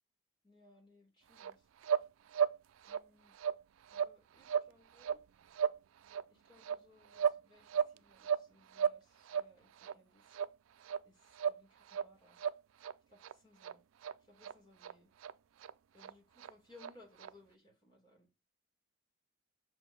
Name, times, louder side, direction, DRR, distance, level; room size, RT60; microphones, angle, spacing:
voice 1, 0.4-1.7 2.9-3.3 3.9-5.2 6.3-10.4 11.0-12.4 13.1-13.8 14.2-15.1 15.9-18.3, left 2 dB, 20° left, 3.6 m, -63 dB
sound 1, 1.4-1.5 1.8-2.1 2.3-2.6 2.8-3.0 3.3-3.6 3.9-4.1 4.4-4.7 5.0-5.2 5.5-5.8 6.1-6.2 6.6-7.4 7.7-8.5 8.7-9.0 9.2-9.5 9.8-9.9 10.3-10.5 10.8-11.0 11.3-11.6 11.9-12.1 12.4-12.9 13.2-13.3 13.6-13.7 14.0-14.1 14.4-14.5 14.8-14.9 15.2-15.3 15.6-15.7 16.0-16.1 16.4-16.5 16.8-16.9 17.2-17.3, right 8 dB, 85° right, 0.3 m, -34 dB
6.0 x 4.7 x 5.2 m
head